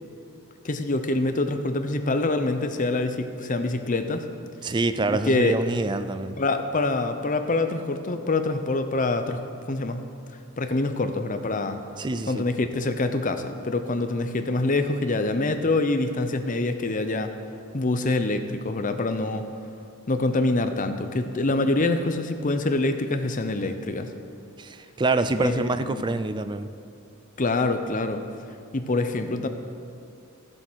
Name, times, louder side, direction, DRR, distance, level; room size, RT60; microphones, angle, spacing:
voice 1, 0.6-4.3 5.1-5.6 6.4-10.1 10.6-11.8 12.3-17.4 17.7-19.5 20.1-24.1 25.4-26.0 27.4-28.2 28.7-29.5, left 2 dB, 35° left, 8 dB, 0.7 m, -25 dB
voice 2, 4.6-6.4 12.0-12.4 24.6-26.7, right 3 dB, 20° right, 11 dB, 0.4 m, -26 dB
13.0 x 7.6 x 6.3 m, 2.6 s
head